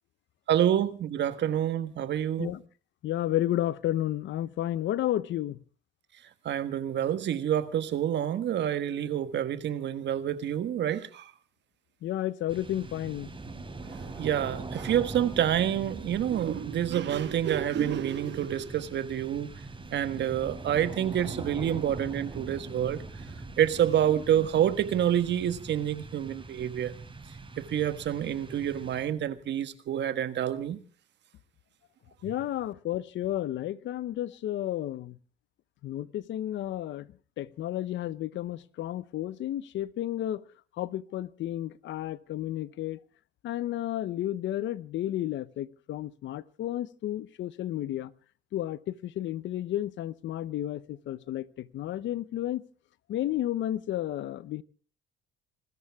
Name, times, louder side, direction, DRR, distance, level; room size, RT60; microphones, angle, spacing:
voice 1, 0.5-2.5 6.4-11.3 14.2-19.5 19.9-23.0 23.6-26.9 27.6-30.8, right 10 dB, 60° right, 1.5 m, -28 dB
voice 2, 3.0-5.6 12.0-13.3 32.2-35.2 35.8-37.1 37.4-40.4 40.8-43.0 43.4-48.1 48.5-52.6 53.1-54.6, left 13 dB, 65° left, 0.8 m, -32 dB
sound 1, 12.5-29.4, right 3 dB, 25° right, 5.3 m, -42 dB
27.0 x 13.5 x 3.6 m
supercardioid pair, 85°, 21 cm